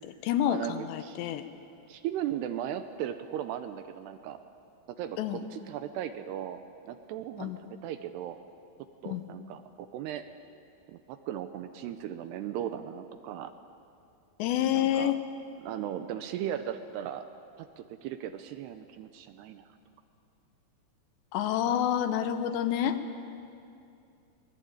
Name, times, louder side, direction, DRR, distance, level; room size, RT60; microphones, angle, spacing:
voice 1, 0.0-1.4 5.2-5.4 7.4-7.6 9.1-9.2 14.4-15.2 21.3-23.0, left 10 dB, 75° left, 9 dB, 3.1 m, -28 dB
voice 2, 1.9-4.4 4.9-6.6 6.8-8.4 9.0-10.2 10.9-13.5 14.7-15.1 15.6-17.3 17.6-19.7, right 10 dB, 80° right, 9 dB, 2.6 m, -37 dB
23.5 x 20.0 x 8.8 m, 2.6 s
omnidirectional pair, 5.2 m